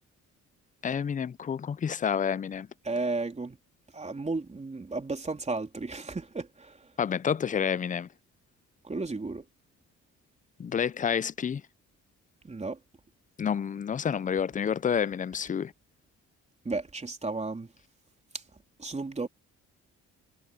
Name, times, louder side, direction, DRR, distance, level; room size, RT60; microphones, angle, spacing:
voice 1, 0.8-2.7 7.0-8.1 10.6-11.6 13.4-15.7, left 7 dB, 25° left, 0.4 m, -29 dB
voice 2, 2.8-3.6 3.9-6.9 8.8-9.5 12.4-12.8 16.6-17.7 18.3-18.4 18.8-19.3, right 3 dB, 20° right, 3.5 m, -33 dB
cardioid pair, 90°, 30 cm